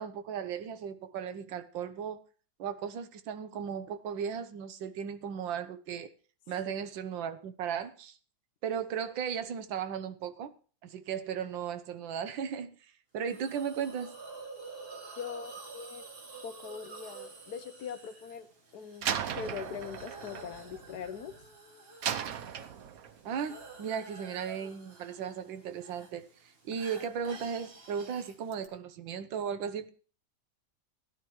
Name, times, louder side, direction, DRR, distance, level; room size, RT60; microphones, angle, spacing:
voice 1, 0.0-2.2 2.6-6.1 6.5-8.2 8.6-10.5 10.8-12.7 13.1-14.1 23.2-29.9, right 7 dB, 90° right, 1.6 m, -36 dB
Hiss, 13.3-28.7, right 3 dB, 35° right, 1.5 m, -50 dB
voice 2, 15.1-16.1 16.4-18.5 18.7-21.3, left 7 dB, 65° left, 1.2 m, -42 dB
Slam, 19.0-21.4 22.0-23.3, right 8 dB, 60° right, 1.1 m, -36 dB
16.0 x 11.0 x 3.1 m
omnidirectional pair, 2.0 m